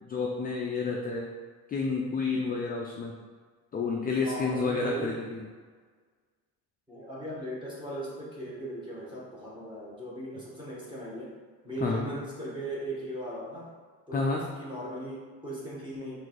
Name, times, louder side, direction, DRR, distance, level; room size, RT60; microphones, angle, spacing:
voice 1, 0.0-1.3 1.7-3.2 3.7-5.5 11.8-12.1 14.1-14.4, left 4 dB, 25° left, -1 dB, 0.3 m, -30 dB
voice 2, 4.2-5.1 6.9-11.3 11.6-13.7 14.1-16.2, right 1 dB, 10° right, -6 dB, 1.3 m, -38 dB
3.8 x 2.6 x 4.7 m, 1.5 s
cardioid pair, 120°, 40 cm